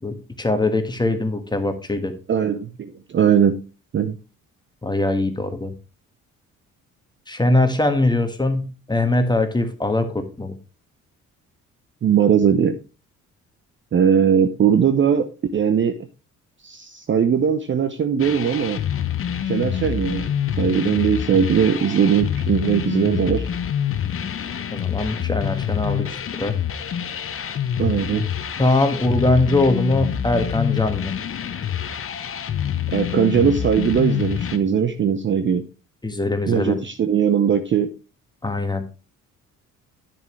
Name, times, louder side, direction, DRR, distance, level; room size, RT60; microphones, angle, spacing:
voice 1, 0.0-2.1 4.8-5.7 7.3-10.5 24.7-26.5 28.6-31.1 36.0-36.8 38.4-38.8, left 2 dB, 10° left, 7 dB, 1.4 m, -22 dB
voice 2, 2.3-3.5 3.9-4.2 12.0-12.7 13.9-16.0 16.6-18.8 19.4-20.3 20.6-23.5 27.8-28.3 32.9-35.6 36.5-37.9, right 8 dB, 25° right, 8 dB, 0.7 m, -19 dB
sound 1, 18.2-34.6, left 9 dB, 30° left, 0.9 m, -26 dB
10.0 x 7.0 x 3.1 m, 0.33 s
figure-of-eight pair, 45°, 42 cm